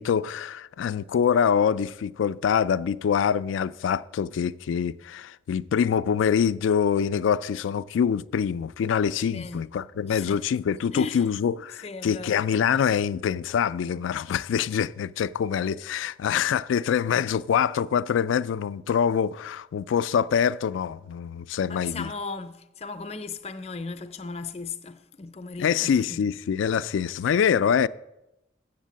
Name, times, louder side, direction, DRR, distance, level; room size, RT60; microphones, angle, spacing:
voice 1, 0.0-22.1 25.6-27.9, left 7 dB, 90° left, 0.3 m, -25 dB
voice 2, 9.3-9.7 10.1-10.4 10.9-11.2 11.8-12.4 21.7-26.2, left 4 dB, 35° left, 0.5 m, -36 dB
7.5 x 7.3 x 7.4 m
head